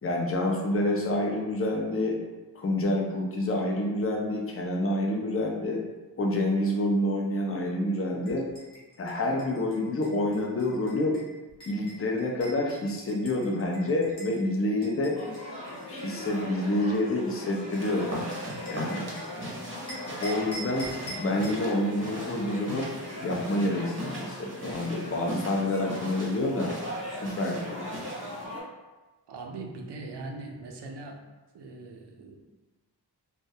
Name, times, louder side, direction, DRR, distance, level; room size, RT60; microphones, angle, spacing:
voice 1, 0.0-2.2 2.6-5.8 6.2-8.5 9.0-11.2 11.7-15.2 15.9-18.2 18.7-19.1 20.2-22.9 23.2-26.7 27.1-27.9, left 1 dB, 35° left, 0 dB, 0.5 m, -28 dB
sound 1, 8.2-14.4 14.8-19.5 19.9-21.6, equal, 90° left, 0.9 m, -45 dB
sound 2, 15.1-28.6, left 1 dB, 55° left, 0.9 m, -40 dB
sound 3, 17.7-28.5, equal, 30° right, 0.6 m, -40 dB
voice 2, 29.3-31.2 31.5-32.4, right 3 dB, 75° right, 1 dB, 0.5 m, -40 dB
2.2 x 2.1 x 2.7 m, 1.2 s
wide cardioid pair, 75°, 41 cm